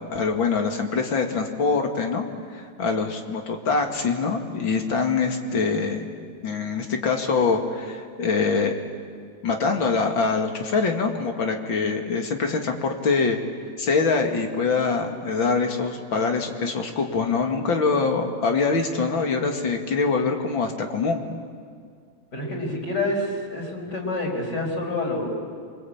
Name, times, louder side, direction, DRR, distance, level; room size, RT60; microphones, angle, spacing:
voice 1, 0.0-2.2 2.5-6.1 6.4-8.8 9.4-13.4 13.8-21.3, left 4 dB, 70° left, 3 dB, 3.0 m, -24 dB
voice 2, 22.3-25.3, left 2 dB, 55° left, -1 dB, 6.1 m, -27 dB
27.0 x 25.0 x 8.8 m, 2.1 s
omnidirectional pair, 2.2 m